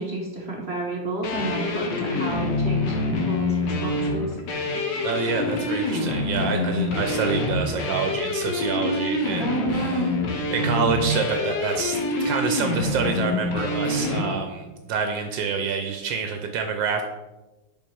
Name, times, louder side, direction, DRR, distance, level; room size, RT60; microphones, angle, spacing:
voice 1, 0.0-4.3 9.4-10.1, right 2 dB, 50° right, -1 dB, 0.8 m, -30 dB
sound 1, 1.2-14.3, left 2 dB, 70° left, 1.6 m, -26 dB
voice 2, 5.0-10.0 10.5-17.0, right 5 dB, 80° right, 5 dB, 1.3 m, -27 dB
5.4 x 4.9 x 4.5 m, 1.1 s
omnidirectional pair, 2.1 m